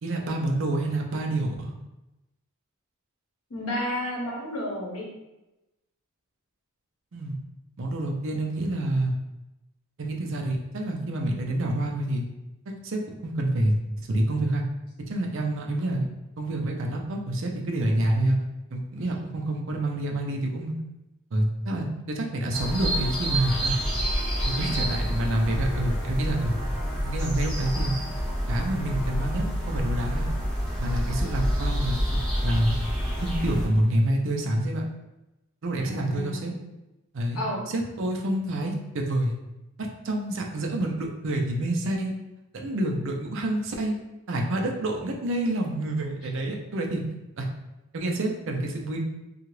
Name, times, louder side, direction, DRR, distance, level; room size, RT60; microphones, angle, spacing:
voice 1, 0.0-1.7 7.1-7.4 7.8-9.1 10.0-12.2 12.7-13.8 14.1-14.6 15.1-16.1 16.4-18.4 18.7-20.7 21.3-23.8 24.6-26.5 27.0-28.0 28.5-30.3 30.8-32.7 33.2-34.8 35.6-36.5 37.1-37.4 37.7-39.4 39.8-42.1 42.5-44.0 44.3-47.0 47.4-47.5 47.9-49.0, right 1 dB, 60° right, 1 dB, 0.5 m, -27 dB
voice 2, 3.5-5.1 24.4-25.1 35.8-36.5 37.3-37.6, left 1 dB, 75° left, -2 dB, 0.9 m, -32 dB
sound 1, 22.5-33.7, equal, 5° left, 0.7 m, -28 dB
2.8 x 2.4 x 3.0 m, 0.98 s
head